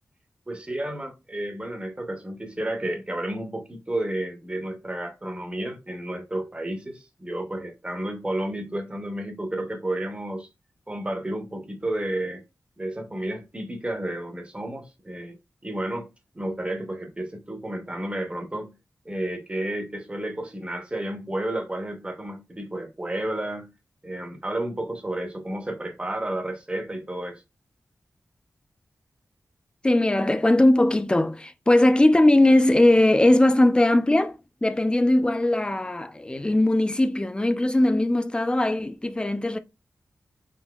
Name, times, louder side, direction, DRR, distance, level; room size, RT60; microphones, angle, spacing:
voice 1, 0.5-10.5 10.9-12.4 12.8-15.4 15.6-18.7 19.0-23.7 24.0-27.4, right 1 dB, 20° right, 0.7 m, -31 dB
voice 2, 29.8-39.6, left 1 dB, 15° left, 0.4 m, -20 dB
3.7 x 2.6 x 2.3 m
wide cardioid pair, 80°, 5 cm